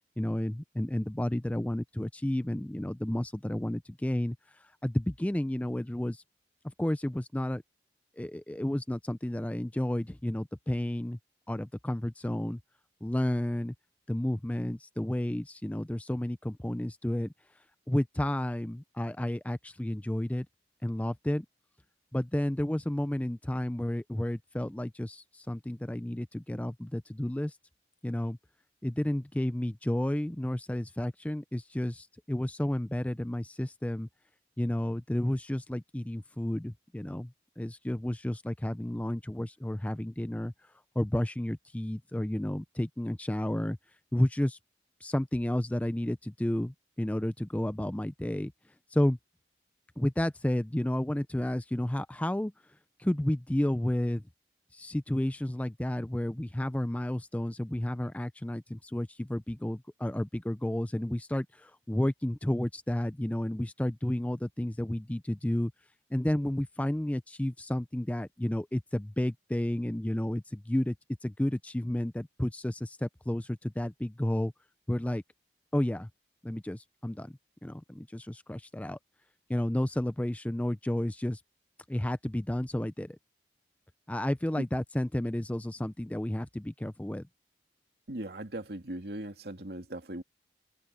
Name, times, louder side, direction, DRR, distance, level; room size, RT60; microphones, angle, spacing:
voice 1, 0.2-4.4 4.8-6.2 6.8-7.6 8.2-11.2 11.5-12.6 13.0-13.7 14.1-17.3 17.9-20.5 20.8-21.5 22.1-27.6 28.0-28.4 28.8-34.1 34.6-37.3 37.6-40.5 41.0-43.8 44.1-44.6 45.0-48.5 48.9-49.2 50.0-52.5 53.0-54.2 54.7-65.7 66.1-71.0 71.2-74.5 74.9-75.2 75.7-76.1 76.4-77.3 77.6-79.0 79.5-81.4 81.9-83.2 84.1-87.2, left 1 dB, 10° left, 0.4 m, -31 dB
voice 2, 88.1-90.2, right 1 dB, 70° right, 2.4 m, -39 dB
open air
head